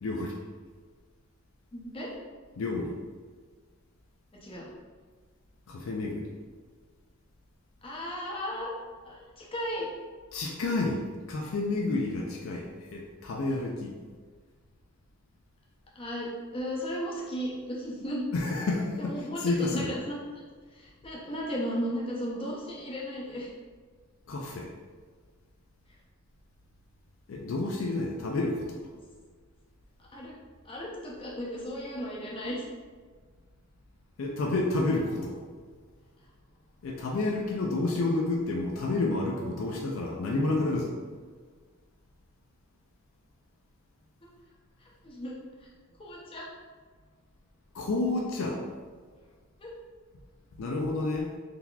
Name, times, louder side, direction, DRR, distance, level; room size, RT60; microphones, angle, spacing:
voice 1, 0.0-0.4 2.6-2.9 5.7-6.3 10.3-13.9 18.3-19.9 24.3-24.7 27.3-28.8 34.2-35.4 36.8-40.9 47.7-48.6 50.6-51.3, left 2 dB, 65° left, -1 dB, 0.4 m, -30 dB
voice 2, 1.7-2.1 4.4-4.6 7.8-8.7 9.0-9.9 16.0-16.3 16.5-18.2 19.0-20.4 20.7-23.5 30.1-30.3 30.6-32.6 45.0-45.3 46.0-46.5 49.6-49.7, equal, 25° left, -5 dB, 0.6 m, -35 dB
3.8 x 2.8 x 2.3 m, 1.5 s
head